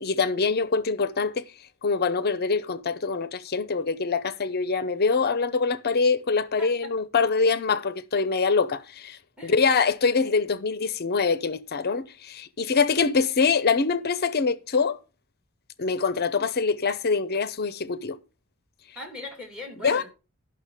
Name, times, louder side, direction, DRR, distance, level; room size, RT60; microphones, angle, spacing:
voice 1, 0.0-1.4 1.8-15.0 15.8-18.2 19.8-20.0, left 4 dB, 45° left, 0.6 m, -24 dB
voice 2, 6.6-6.9 9.4-9.7 18.9-20.0, left 2 dB, 5° right, 2.9 m, -39 dB
12.0 x 5.8 x 4.9 m
head